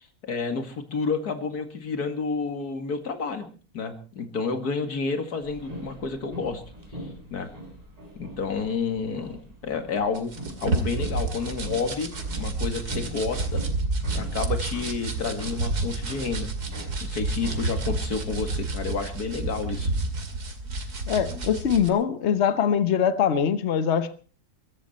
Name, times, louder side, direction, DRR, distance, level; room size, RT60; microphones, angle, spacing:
voice 1, 0.0-3.5 3.7-6.6 7.3-7.5 8.2-12.1 12.4-13.6 14.1-16.5 17.0-19.9, left 4 dB, 85° left, 2.6 m, -30 dB
sound 1, 5.4-18.0, right 1 dB, 25° right, 3.8 m, -42 dB
sound 2, 10.2-21.9, right 2 dB, 90° right, 2.9 m, -30 dB
voice 2, 21.1-24.2, left 8 dB, 50° left, 1.2 m, -23 dB
22.5 x 12.5 x 4.3 m
omnidirectional pair, 1.6 m